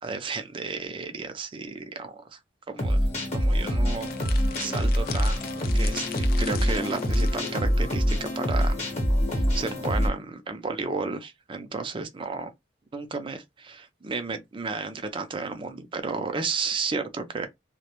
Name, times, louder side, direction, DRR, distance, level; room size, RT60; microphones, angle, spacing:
voice 1, 0.0-2.4 2.7-3.1 3.3-8.8 9.3-12.5 12.9-17.5, right 4 dB, 30° right, 0.4 m, -33 dB
sound 1, 2.8-10.1, equal, 35° left, 0.9 m, -25 dB
sound 2, 4.0-7.6, left 9 dB, 50° left, 0.3 m, -41 dB
2.2 x 2.1 x 2.8 m
head